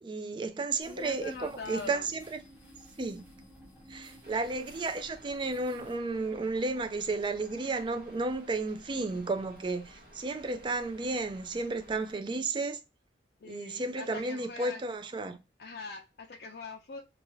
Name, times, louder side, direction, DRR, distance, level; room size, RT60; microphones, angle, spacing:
voice 1, 0.0-2.4 3.0-3.2 3.9-12.8 13.4-15.4, right 3 dB, 25° right, 0.3 m, -33 dB
voice 2, 0.8-2.1 13.4-14.8 15.6-17.0, left 3 dB, 60° left, 0.4 m, -42 dB
sound 1, 0.8-5.9, equal, 10° right, 0.9 m, -54 dB
Rain, 4.2-12.1, equal, 60° right, 0.9 m, -55 dB
2.7 x 2.3 x 2.9 m
head